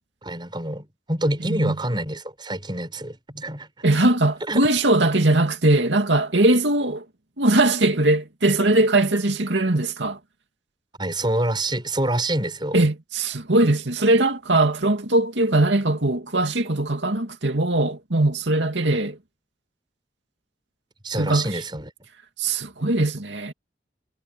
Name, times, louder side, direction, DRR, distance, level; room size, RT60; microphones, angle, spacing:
voice 1, 0.2-3.7 4.5-4.6 11.0-12.8 21.0-21.9, right 1 dB, 25° right, 6.3 m, -27 dB
voice 2, 1.4-1.7 3.8-7.0 7.4-10.2 12.7-19.2 21.2-21.5 22.4-23.5, right 2 dB, 80° right, 2.5 m, -20 dB
head